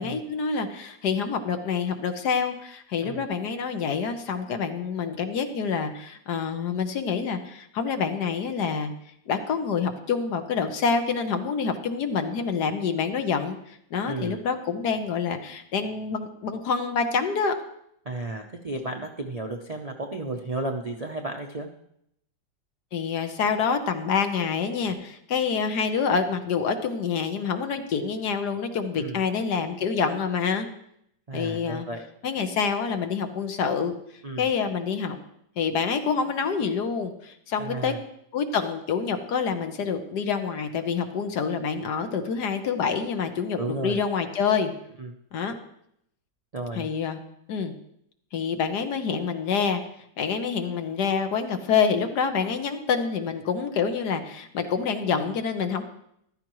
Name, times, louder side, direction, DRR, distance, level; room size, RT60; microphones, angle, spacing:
voice 1, 0.0-8.9 9.3-17.6 22.9-30.7 31.3-31.9 32.2-33.9 34.4-35.2 35.6-37.9 38.3-44.7 45.3-45.5 46.7-47.2 47.5-47.7 48.3-49.8 50.2-55.8, left 6 dB, 65° left, 7 dB, 1.5 m, -27 dB
voice 2, 14.0-14.4 18.0-21.7 29.0-29.2 31.3-32.0 34.2-34.5 37.6-38.0 43.6-44.0 45.0-45.2 46.5-46.9, right 2 dB, 70° right, 3 dB, 0.3 m, -33 dB
14.5 x 12.5 x 3.1 m, 0.74 s
omnidirectional pair, 2.0 m